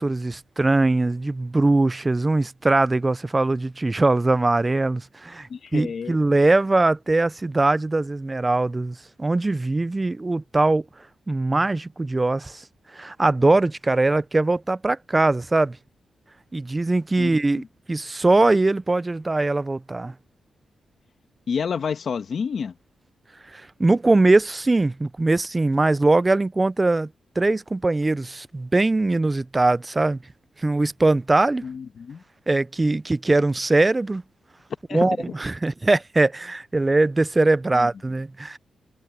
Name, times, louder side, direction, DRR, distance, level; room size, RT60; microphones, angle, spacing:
voice 1, 0.0-10.8 11.3-12.6 12.9-15.8 16.5-20.1 23.5-27.1 27.4-30.2 30.6-31.6 32.5-34.2 34.9-38.6, right 2 dB, 20° right, 0.4 m, -21 dB
voice 2, 5.5-6.2 17.2-17.7 21.5-22.7 31.6-32.2 34.9-35.2 37.7-37.9, left 6 dB, 55° left, 1.9 m, -29 dB
cardioid pair, 110°, 0 cm